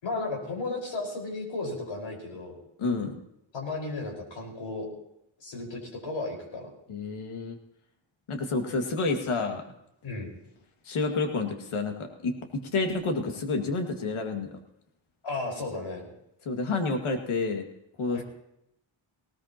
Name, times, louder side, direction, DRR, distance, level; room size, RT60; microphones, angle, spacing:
voice 1, 0.0-2.6 3.5-4.9 5.4-6.7 10.0-10.3 15.2-16.1 18.1-18.2, left 3 dB, 65° left, 0 dB, 4.9 m, -34 dB
voice 2, 2.8-3.2 6.9-7.6 8.3-9.6 10.9-14.6 16.5-17.6 18.0-18.2, left 3 dB, 85° left, 4 dB, 2.2 m, -29 dB
19.0 x 18.5 x 2.9 m, 0.80 s
wide cardioid pair, 135°, 48 cm